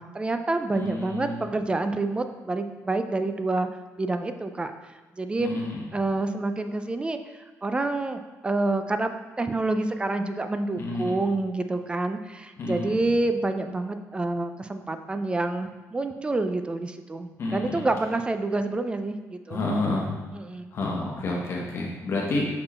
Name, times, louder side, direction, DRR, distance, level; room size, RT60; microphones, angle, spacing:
voice 1, 0.0-3.7 4.0-4.7 5.2-5.6 5.9-19.6 20.3-20.8, right 2 dB, 20° right, 8 dB, 0.4 m, -28 dB
voice 2, 0.7-1.4 5.4-5.8 10.8-11.1 12.6-12.9 17.4-17.9 19.5-20.2 20.7-22.5, left 2 dB, 50° left, -3 dB, 1.1 m, -29 dB
5.7 x 4.5 x 4.3 m, 1.2 s
cardioid pair, 135°, 6 cm